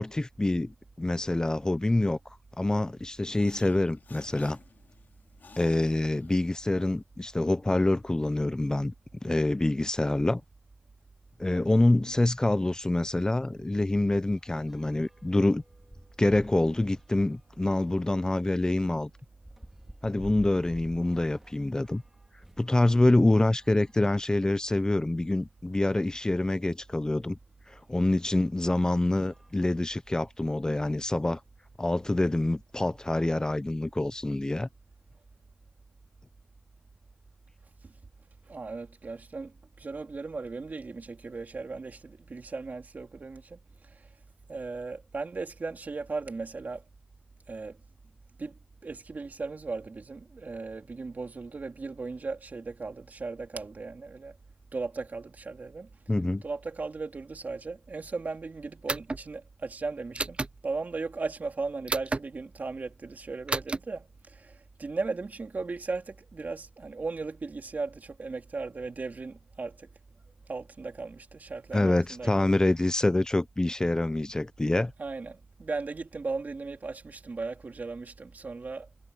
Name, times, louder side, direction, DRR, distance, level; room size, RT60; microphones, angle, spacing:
voice 1, 0.0-2.2 2.6-4.6 5.6-8.9 9.2-10.4 11.4-15.6 16.2-19.1 20.0-22.0 22.6-27.4 27.7-31.4 31.8-34.7 56.1-56.4 71.7-74.9, left 2 dB, 20° left, 0.5 m, -26 dB
sound 1, 3.2-6.9, left 4 dB, 80° left, 2.4 m, -53 dB
sound 2, 12.4-12.5 12.9-13.0 13.3-22.8 23.5-24.8 25.5-25.6 25.9-26.0 27.7-27.8 28.4-28.6 29.1-30.3, right 1 dB, 10° right, 2.2 m, -51 dB
voice 2, 38.5-44.1 44.5-46.8 47.5-47.8 48.4-54.4 54.7-55.9 56.4-69.9 70.5-72.5 75.0-78.9, right 3 dB, 60° right, 3.2 m, -37 dB
sound 3, 58.9-59.2 60.1-60.5 61.9-62.2 63.5-63.8, right 3 dB, 35° right, 0.3 m, -30 dB
wide cardioid pair, 80°, 3 cm